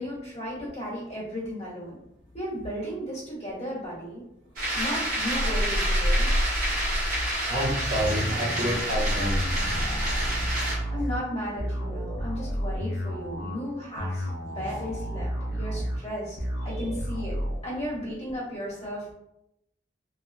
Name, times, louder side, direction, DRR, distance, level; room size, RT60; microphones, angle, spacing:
voice 1, 0.0-2.0 2.3-4.2 4.7-6.3 10.9-16.4 16.6-17.4 17.6-19.1, equal, 35° left, -8 dB, 1.3 m, -35 dB
sound 1, 4.6-10.8, equal, 50° right, 1.0 m, -27 dB
voice 2, 7.4-9.8 16.7-16.9, equal, 75° right, -7 dB, 1.2 m, -29 dB
sound 2, 8.0-17.6, equal, 55° left, 0.6 m, -32 dB
3.0 x 2.2 x 2.4 m, 0.83 s
head